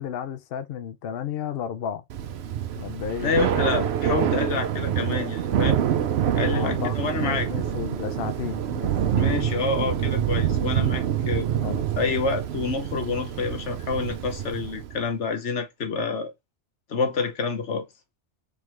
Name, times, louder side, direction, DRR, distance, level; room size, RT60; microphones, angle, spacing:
voice 1, 0.0-2.0 2.7-3.6 4.2-4.6 6.5-9.1 11.6-11.8, left 8 dB, 65° left, 0.7 m, -33 dB
Thunder / Rain, 2.1-15.0, right 9 dB, 70° right, 0.9 m, -26 dB
voice 2, 3.2-5.8 6.4-7.5 9.2-11.5 12.0-16.3 16.9-17.8, left 4 dB, 80° left, 1.3 m, -28 dB
3.8 x 3.5 x 3.1 m
omnidirectional pair, 1.2 m